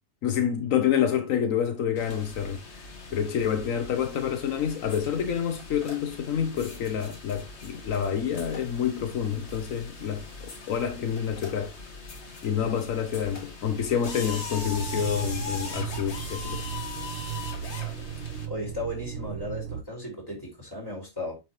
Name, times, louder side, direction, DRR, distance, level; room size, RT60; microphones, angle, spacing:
voice 1, 0.2-2.6 3.1-11.7 12.4-16.7, left 8 dB, 80° left, 1.2 m, -28 dB
sound 1, 2.0-18.5, left 3 dB, 55° left, 1.8 m, -40 dB
sound 2, 14.8-19.8, right 9 dB, 80° right, 1.0 m, -36 dB
voice 2, 17.7-18.1 18.5-21.4, left 1 dB, 15° left, 5.3 m, -36 dB
9.2 x 4.4 x 3.1 m
omnidirectional pair, 1.4 m